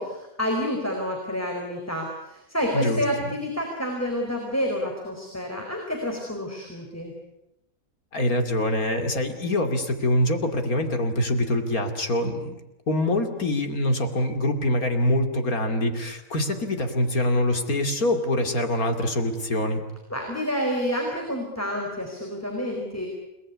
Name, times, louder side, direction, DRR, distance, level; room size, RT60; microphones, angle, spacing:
voice 1, 0.0-7.1 20.1-23.1, equal, 10° left, 0 dB, 4.5 m, -29 dB
voice 2, 8.1-12.6 12.9-19.8, left 1 dB, 75° left, 6 dB, 3.1 m, -24 dB
30.0 x 19.0 x 9.7 m, 0.92 s
omnidirectional pair, 1.5 m